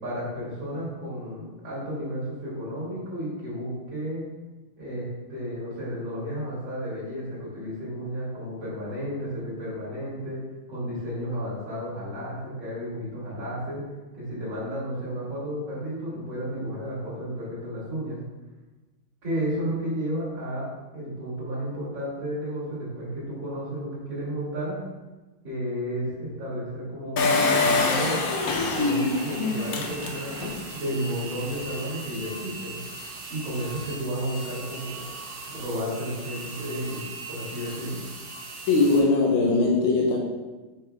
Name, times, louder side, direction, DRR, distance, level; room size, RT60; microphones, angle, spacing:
voice 1, 0.0-4.3 4.8-10.4 10.7-13.8 14.1-18.2 19.2-20.7 20.9-24.8 25.4-28.2 28.7-32.8 33.3-35.1 35.5-38.1, equal, 70° right, -10 dB, 3.2 m, -32 dB
Engine, 27.2-30.6 31.1-31.2 31.4-31.5, left 3 dB, 60° left, 1.1 m, -25 dB
sound 1, 27.6-39.0, right 3 dB, 55° right, 1.4 m, -39 dB
voice 2, 38.7-40.2, left 3 dB, 85° left, -1 dB, 1.8 m, -20 dB
8.0 x 5.2 x 3.5 m, 1.2 s
omnidirectional pair, 2.2 m